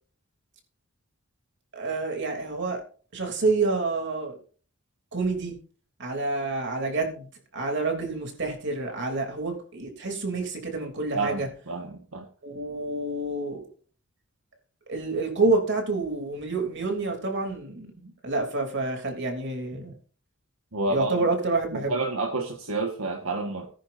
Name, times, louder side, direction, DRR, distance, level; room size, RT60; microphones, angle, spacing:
voice 1, 1.7-2.8 3.1-4.3 5.1-5.6 6.0-7.3 7.5-11.5 12.4-13.6 14.9-19.9 20.9-22.0, right 3 dB, 55° right, 3 dB, 3.1 m, -28 dB
voice 2, 11.1-12.3 20.7-21.3 21.7-23.7, right 3 dB, 75° right, 2 dB, 1.6 m, -29 dB
18.5 x 10.0 x 2.7 m, 0.42 s
head